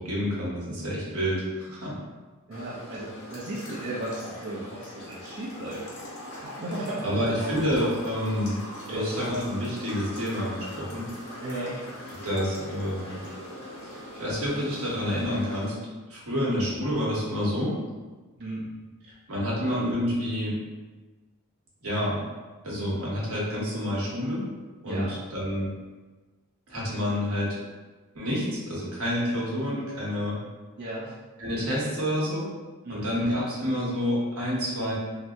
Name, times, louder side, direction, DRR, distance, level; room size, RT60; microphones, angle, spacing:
voice 1, 0.0-2.0 7.0-8.6 8.9-11.1 12.2-13.2 13.9-15.8 16.1-17.8 19.3-20.6 21.8-22.2 22.6-24.5 24.8-25.7 26.7-27.6 28.1-30.4 31.4-32.5 32.9-34.9, equal, 75° right, -6 dB, 1.0 m, -28 dB
sound 1, 2.5-15.7, left 1 dB, 75° left, 1.0 m, -41 dB
voice 2, 2.5-5.8 6.3-7.1 8.9-9.1 11.4-11.8 18.4-18.7 24.8-25.2 30.8-31.1 32.8-33.2, right 1 dB, 50° right, -8 dB, 0.5 m, -35 dB
2.8 x 2.0 x 3.4 m, 1.2 s
head